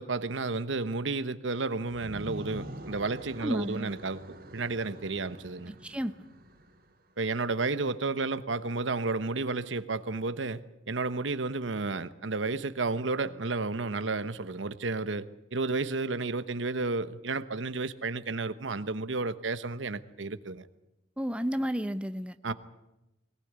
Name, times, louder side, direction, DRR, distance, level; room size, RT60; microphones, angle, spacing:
voice 1, 0.0-5.7 7.2-10.6 10.9-20.6 22.4-22.5, right 3 dB, 85° right, 1.0 m, -32 dB
sound 1, 1.9-6.9, equal, 55° right, 3.2 m, -45 dB
voice 2, 3.4-3.9 5.7-6.1 21.2-22.5, equal, 5° right, 0.7 m, -32 dB
22.0 x 18.0 x 9.5 m
head